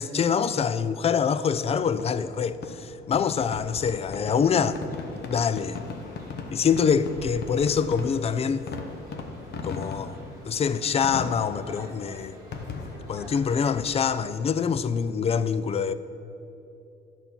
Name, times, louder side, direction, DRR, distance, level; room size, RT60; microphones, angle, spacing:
voice 1, 0.0-4.8 5.1-5.8 6.5-8.7 9.6-10.2 10.5-12.4 13.1-15.9, left 6 dB, 30° left, 0.4 m, -25 dB
Fireworks, 1.8-15.3, left 4 dB, 55° left, 0.9 m, -39 dB
sound 1, 4.2-14.2, right 1 dB, 15° right, 1.6 m, -49 dB
11.0 x 4.4 x 7.0 m
cardioid pair, 105°, 20 cm